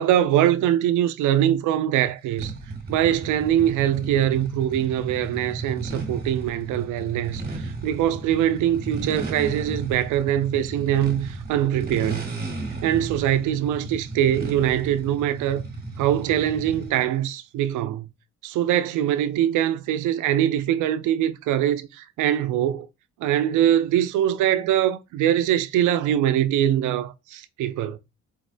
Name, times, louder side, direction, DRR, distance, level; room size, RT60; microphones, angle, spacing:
voice 1, 0.0-2.5 2.9-12.3 12.8-15.6 16.0-18.1 18.4-22.9 23.2-28.0, right 11 dB, 80° right, 0.5 m, -23 dB
sound 1, 2.4-17.1, right 3 dB, 30° right, 1.0 m, -34 dB
4.6 x 2.0 x 2.5 m
cardioid pair, 90°, 30 cm